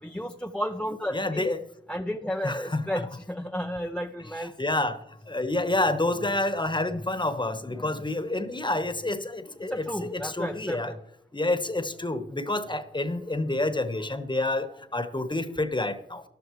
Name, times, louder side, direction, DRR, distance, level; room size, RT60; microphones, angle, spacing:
voice 1, 0.0-1.6 1.9-4.5 7.8-8.0 9.6-11.0, equal, 5° left, 0.7 m, -33 dB
voice 2, 1.1-1.6 2.4-3.1 4.4-5.0 5.3-10.9 11.3-16.2, left 2 dB, 20° left, 1.2 m, -28 dB
14.0 x 11.5 x 3.2 m
cardioid pair, 45°, 21 cm